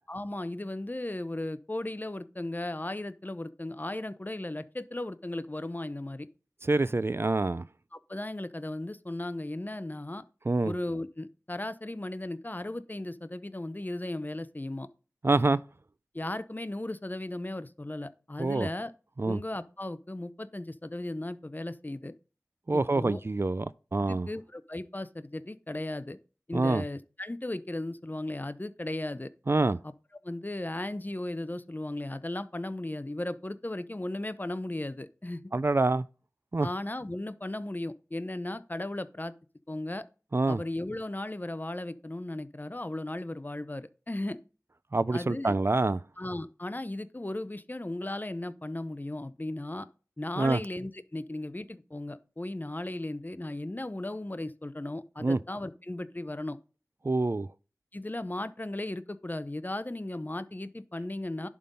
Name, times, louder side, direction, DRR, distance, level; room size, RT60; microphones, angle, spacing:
voice 1, 0.1-6.3 7.9-10.2 10.6-14.9 16.1-18.9 19.2-22.1 22.7-23.2 24.1-26.2 26.5-29.3 29.8-29.9 30.2-35.5 36.6-39.3 39.7-40.0 40.5-44.4 45.1-45.5 46.2-49.9 50.2-56.6 57.9-61.5, left 1 dB, 30° left, 0.6 m, -36 dB
voice 2, 6.6-7.7 10.5-10.7 15.2-15.6 18.4-18.7 19.2-19.4 22.7-24.3 26.5-26.8 29.5-29.8 35.5-36.0 36.5-36.7 40.3-40.6 44.9-46.0 50.4-50.6 55.2-55.4 57.0-57.5, right 2 dB, 40° right, 0.3 m, -26 dB
11.0 x 3.7 x 5.3 m
wide cardioid pair, 45°, 6 cm